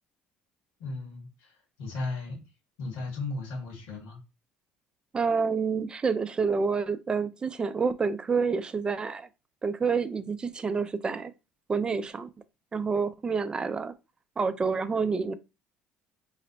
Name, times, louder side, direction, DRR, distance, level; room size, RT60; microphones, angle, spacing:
voice 1, 0.8-2.4 2.8-4.2, left 3 dB, 85° left, 1.5 m, -36 dB
voice 2, 5.1-9.3 9.6-11.3 11.7-12.3 12.7-13.9 14.4-15.3, right 5 dB, 25° right, 0.4 m, -28 dB
3.2 x 2.1 x 3.9 m
cardioid pair, 105°, 4 cm